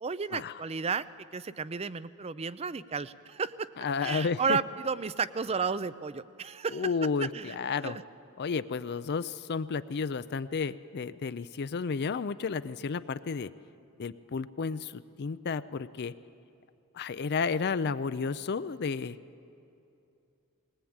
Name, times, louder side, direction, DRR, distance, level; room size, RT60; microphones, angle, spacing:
voice 1, 0.0-3.7 4.0-6.9 7.3-7.6 7.8-8.0, right 5 dB, 25° right, 16 dB, 0.5 m, -33 dB
voice 2, 3.8-4.6 6.7-8.0 8.4-13.5 14.0-16.1 16.9-19.2, left 5 dB, 50° left, 13 dB, 0.4 m, -32 dB
20.0 x 20.0 x 8.7 m, 2.7 s
head